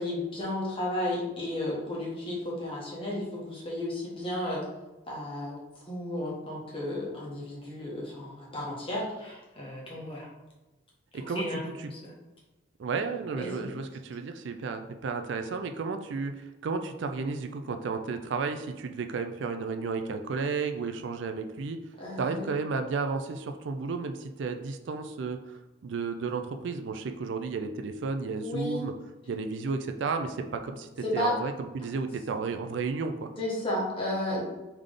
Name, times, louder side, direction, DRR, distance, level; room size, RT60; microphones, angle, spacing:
voice 1, 0.0-4.6 5.1-5.6 5.8-10.3 11.2-12.1 13.4-13.6 22.0-22.5 28.4-28.8 31.0-31.4 33.4-34.4, left 1 dB, 30° left, -4 dB, 1.2 m, -33 dB
voice 2, 11.1-11.9 12.8-21.8 22.2-28.9 29.3-33.3, right 4 dB, 65° right, 7 dB, 0.4 m, -33 dB
3.6 x 3.3 x 3.7 m, 1.1 s
head